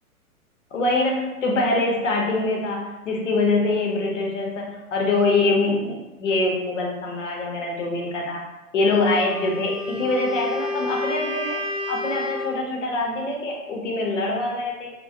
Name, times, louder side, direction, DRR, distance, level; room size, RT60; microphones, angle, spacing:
voice 1, 0.7-8.4 8.7-11.6 11.9-14.9, left 2 dB, 55° left, -1 dB, 0.7 m, -24 dB
Wind instrument woodwind instrument, 9.1-12.6, left 2 dB, 30° right, 0.7 m, -30 dB
2.2 x 2.1 x 2.6 m, 1.1 s
figure-of-eight pair, 115°, 45 cm